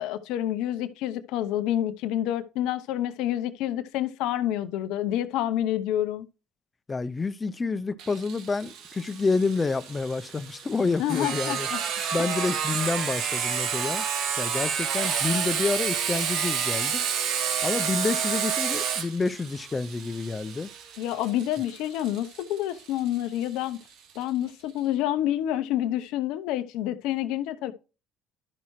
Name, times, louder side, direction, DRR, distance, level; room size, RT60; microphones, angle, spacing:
voice 1, 0.0-6.3 11.0-11.8 12.2-12.3 21.0-23.8 24.2-27.7, left 12 dB, 70° left, 0.6 m, -28 dB
voice 2, 6.9-11.7 12.1-14.0 14.4-17.0 17.6-20.7, left 4 dB, 25° left, 0.5 m, -28 dB
Sawing, 8.0-23.4, right 7 dB, 65° right, 1.0 m, -30 dB
11.5 x 5.6 x 3.1 m
hypercardioid pair, 65°, 0 cm